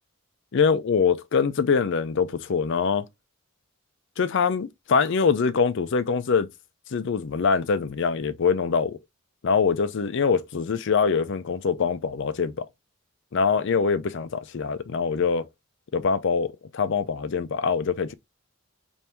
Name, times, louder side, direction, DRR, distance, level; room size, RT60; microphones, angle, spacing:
voice 1, 0.5-3.0 4.2-6.5 6.9-9.0 9.4-12.5 13.3-15.5 15.9-18.1, left 5 dB, 60° left, 0.5 m, -24 dB
3.4 x 2.6 x 4.3 m
head